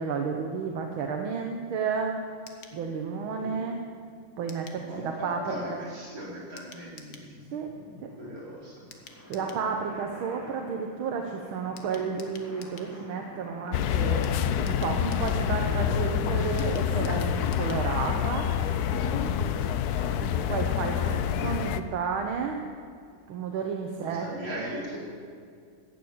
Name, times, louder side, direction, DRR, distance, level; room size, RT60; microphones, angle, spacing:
voice 1, 0.0-2.2 2.7-3.8 4.4-5.4 5.7-5.8 7.5-7.7 8.0-8.1 9.3-14.3 14.6-18.5 20.2-22.6 23.3-24.3 24.6-24.7, right 6 dB, 80° right, 3 dB, 1.8 m, -32 dB
sound 1, 2.5-2.8 4.5-4.8 6.6-7.3 8.9-9.7 11.8-12.9 14.2-15.4 16.6-17.9 18.2-18.3 18.5-18.6, left 5 dB, 55° left, 1.6 m, -50 dB
voice 2, 2.7-3.6 4.8-8.9 9.3-9.5 18.9-19.3 20.1-20.6 20.9-21.5 24.0-25.0, equal, 60° right, -7 dB, 5.0 m, -40 dB
sound 2, 8.9-18.0, equal, 5° left, 2.1 m, -48 dB
sound 3, 13.7-21.8, left 9 dB, 75° left, 0.9 m, -27 dB
15.0 x 7.9 x 8.6 m, 2.2 s
omnidirectional pair, 2.3 m